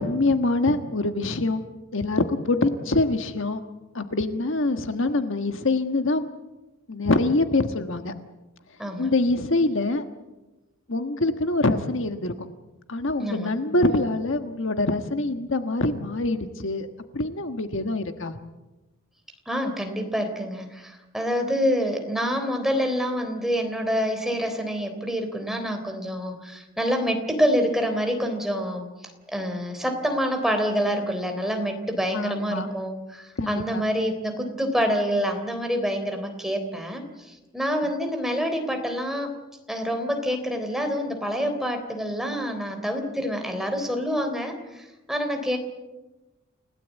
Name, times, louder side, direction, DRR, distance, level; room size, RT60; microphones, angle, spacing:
voice 1, 0.0-1.6 1.9-3.6 3.9-6.3 6.9-8.1 9.0-10.0 10.9-12.5 12.9-16.9 17.1-18.4 32.1-32.7 33.4-33.8, left 2 dB, 65° left, 8 dB, 1.4 m, -24 dB
voice 2, 8.8-9.1 13.2-13.6 19.5-28.9 29.3-39.3 39.7-45.6, equal, ahead, 4 dB, 3.5 m, -27 dB
29.5 x 17.0 x 8.3 m, 1.1 s
head